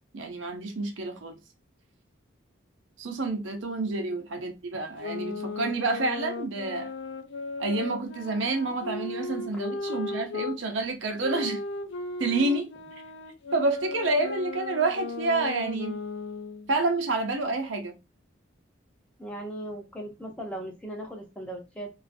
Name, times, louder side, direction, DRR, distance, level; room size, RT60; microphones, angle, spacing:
voice 1, 0.1-1.4 3.0-6.9 7.6-11.6 12.2-12.7 13.5-16.0 16.7-18.0, right 3 dB, 75° right, 0.6 m, -28 dB
sound 1, 5.0-10.6 11.2-16.7, left 3 dB, 60° left, 0.3 m, -36 dB
voice 2, 19.2-21.9, right 1 dB, 5° left, 0.5 m, -38 dB
2.4 x 2.3 x 2.5 m
head